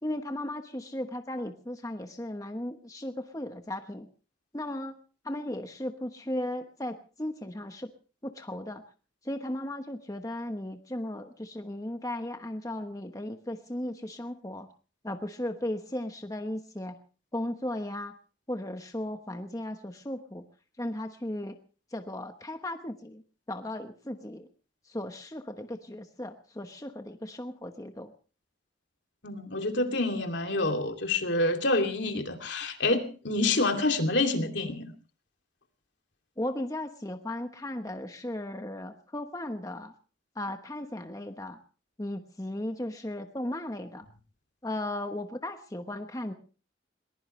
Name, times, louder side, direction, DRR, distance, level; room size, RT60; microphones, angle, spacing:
voice 1, 0.0-4.1 4.5-5.0 5.2-7.9 8.2-8.8 9.2-14.7 15.0-17.0 17.3-18.2 18.5-20.4 20.8-21.6 21.9-23.2 23.5-24.5 24.8-28.1 36.4-39.9 40.3-41.6 42.0-44.1 44.6-46.3, left 1 dB, 20° left, 6 dB, 1.1 m, -36 dB
voice 2, 29.2-34.9, left 2 dB, 70° left, 4 dB, 2.8 m, -27 dB
21.5 x 20.5 x 3.2 m, 0.38 s
head